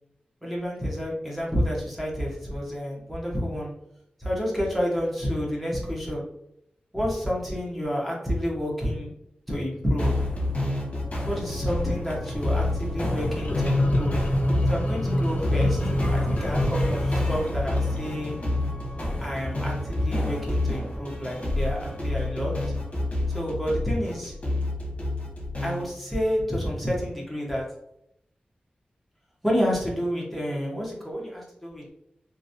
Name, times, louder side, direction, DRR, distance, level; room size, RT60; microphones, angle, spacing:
voice 1, 0.4-3.7 4.2-6.2 6.9-9.1 9.5-10.2 11.2-14.2 14.7-18.4 19.2-22.7 23.3-24.3 25.6-27.7 29.4-31.9, equal, ahead, -4 dB, 1.0 m, -29 dB
sound 1, 10.0-25.9, left 1 dB, 45° left, 1.0 m, -29 dB
sound 2, 12.1-12.3 13.1-18.1, equal, 60° left, 0.5 m, -27 dB
2.9 x 2.6 x 2.6 m, 0.77 s
wide cardioid pair, 100°, 3 cm